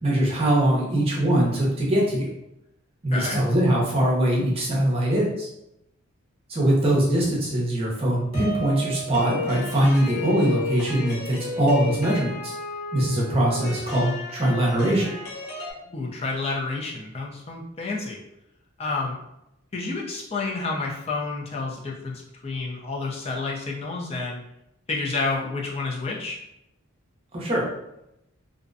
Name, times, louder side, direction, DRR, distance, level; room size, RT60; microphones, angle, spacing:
voice 1, 0.0-2.3 3.0-5.5 6.5-12.5 12.9-15.2 27.3-27.6, right 1 dB, 25° right, -4 dB, 0.6 m, -22 dB
sound 1, 8.3-15.7, left 2 dB, 90° left, 0.8 m, -33 dB
voice 2, 15.8-18.2 18.8-19.2 19.7-24.4 24.9-26.4, left 3 dB, 30° left, -2 dB, 0.4 m, -30 dB
2.5 x 2.1 x 2.5 m, 0.84 s
head